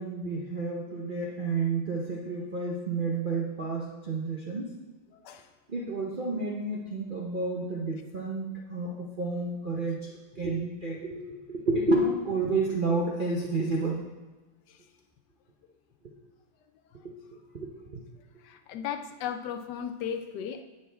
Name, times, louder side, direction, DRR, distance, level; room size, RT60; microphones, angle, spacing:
voice 1, 0.0-4.7 5.7-10.1 10.3-14.0 17.0-17.1 17.5-18.0, right 3 dB, 80° right, -3 dB, 0.4 m, -30 dB
voice 2, 5.1-5.4 14.7-14.8 18.4-20.6, left 8 dB, 75° left, 8 dB, 1.0 m, -36 dB
10.5 x 8.6 x 3.4 m, 1.2 s
omnidirectional pair, 2.4 m